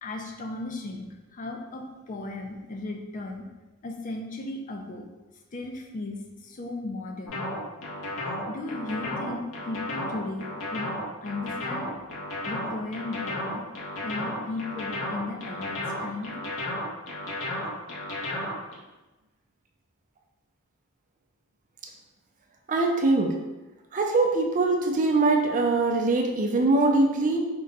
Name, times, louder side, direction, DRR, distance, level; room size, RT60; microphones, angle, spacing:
voice 1, 0.0-3.4 3.8-5.1 5.5-7.5 8.5-10.9 11.2-11.9 12.4-13.6 14.0-16.4, left 2 dB, 40° left, 2 dB, 0.4 m, -36 dB
sound 1, 7.3-18.7, left 1 dB, 75° left, 0.9 m, -33 dB
voice 2, 22.7-23.3 23.9-27.5, right 3 dB, 40° right, 2 dB, 0.4 m, -22 dB
3.7 x 2.2 x 3.9 m, 1.1 s
head